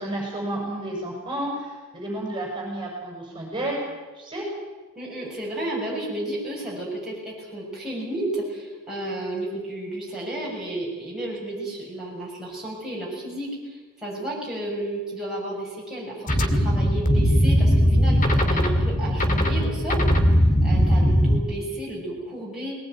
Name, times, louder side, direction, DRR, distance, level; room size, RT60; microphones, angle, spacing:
voice 1, 0.0-3.8 4.1-4.5, right 1 dB, 20° right, -1 dB, 6.5 m, -31 dB
voice 2, 4.9-22.8, right 1 dB, 5° right, -6 dB, 6.8 m, -32 dB
sound 1, 16.3-21.4, equal, 35° left, 2.3 m, -19 dB
20.5 x 19.0 x 9.2 m, 1.3 s
head